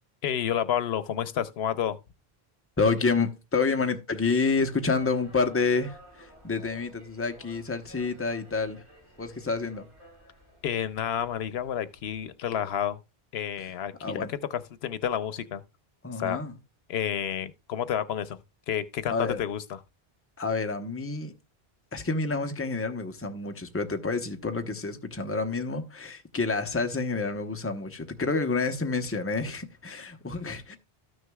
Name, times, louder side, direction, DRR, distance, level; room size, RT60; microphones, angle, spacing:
voice 1, 0.2-2.0 10.6-13.0 13.3-14.3 14.5-15.6 16.2-16.4 16.9-18.4 18.7-19.8, left 9 dB, 85° left, 0.9 m, -30 dB
voice 2, 2.8-8.8 9.2-9.9 14.0-14.3 16.0-16.5 19.1-19.4 20.4-21.3 21.9-30.8, left 4 dB, 15° left, 0.7 m, -28 dB
sound 1, 4.4-12.3, right 1 dB, 30° right, 5.4 m, -54 dB
13.5 x 6.4 x 2.3 m
omnidirectional pair, 1.0 m